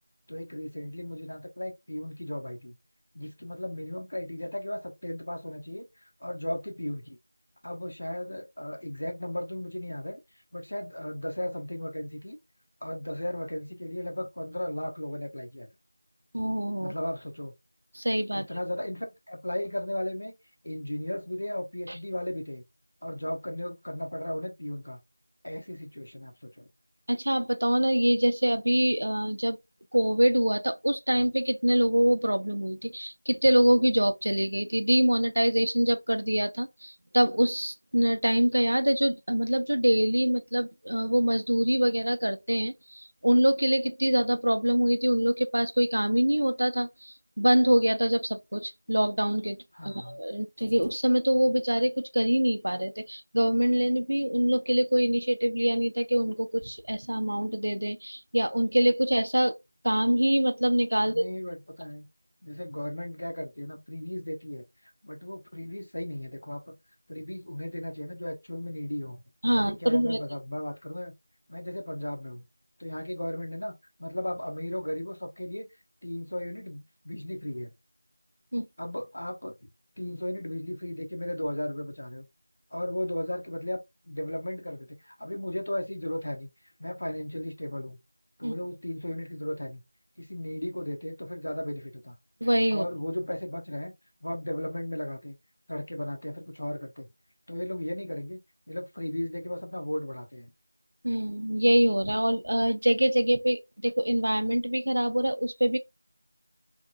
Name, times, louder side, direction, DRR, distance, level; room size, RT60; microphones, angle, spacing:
voice 1, 0.3-2.8 3.1-7.2 7.6-10.2 10.5-12.4 12.8-15.7 16.8-17.5 18.3-20.3 20.6-22.6 23.0-25.0 25.4-26.7 49.7-50.2 61.0-62.1 62.4-64.6 65.0-66.8 67.1-69.2 69.6-71.1 71.5-72.5 72.8-73.7 74.0-75.7 76.0-77.7 78.8-79.7 80.0-82.3 82.7-86.5 86.8-88.0 88.4-89.8 90.2-92.2 92.7-93.9 94.2-95.4 95.7-97.1 97.5-98.4 98.7-100.5, left 1 dB, 60° left, 0.8 m, -35 dB
voice 2, 16.3-16.9 17.9-18.5 27.1-29.6 29.9-49.6 49.8-59.6 59.8-61.3 69.4-70.2 78.5-78.7 88.4-88.5 92.4-92.9 101.0-105.8, right 1 dB, 85° right, 0.5 m, -25 dB
2.8 x 2.1 x 2.5 m
figure-of-eight pair, 180°, 0 cm